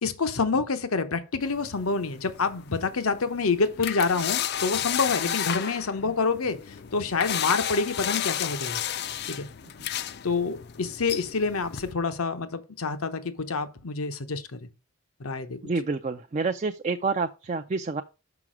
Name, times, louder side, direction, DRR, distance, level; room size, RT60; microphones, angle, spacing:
voice 1, 0.0-6.6 6.9-8.8 9.3-9.5 10.2-14.6 15.2-15.6, left 4 dB, 85° left, 0.9 m, -27 dB
sound 1, 1.4-11.9, left 9 dB, 50° left, 0.4 m, -33 dB
voice 2, 15.6-18.0, right 4 dB, 35° right, 0.4 m, -28 dB
6.0 x 5.0 x 6.1 m
head